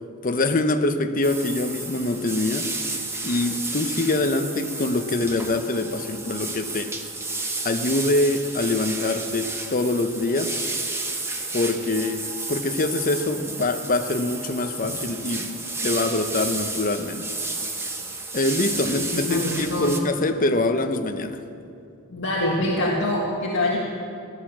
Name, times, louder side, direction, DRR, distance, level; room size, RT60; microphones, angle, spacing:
voice 1, 0.2-2.7 3.2-6.9 7.6-10.6 11.5-17.3 18.3-21.4, left 2 dB, 40° left, 7 dB, 0.9 m, -24 dB
sound 1, 1.2-20.0, right 3 dB, 10° right, 1.2 m, -32 dB
voice 2, 19.1-20.0 22.1-23.8, left 1 dB, 60° left, -4 dB, 1.8 m, -25 dB
16.5 x 11.5 x 7.5 m, 2.5 s
head